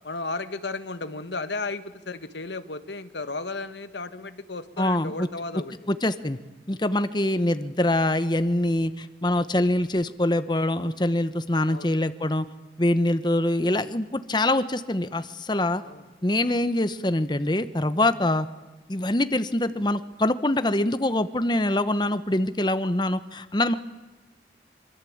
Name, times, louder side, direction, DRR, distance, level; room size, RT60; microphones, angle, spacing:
voice 1, 0.0-5.7 11.7-11.9 15.8-16.0 16.4-16.6, left 3 dB, 85° left, 10 dB, 1.5 m, -34 dB
voice 2, 4.8-5.3 5.9-6.4 6.7-12.5 12.8-15.8 16.2-18.5 18.9-23.7, left 1 dB, 25° left, 11 dB, 1.0 m, -24 dB
25.0 x 25.0 x 8.7 m, 1.2 s
head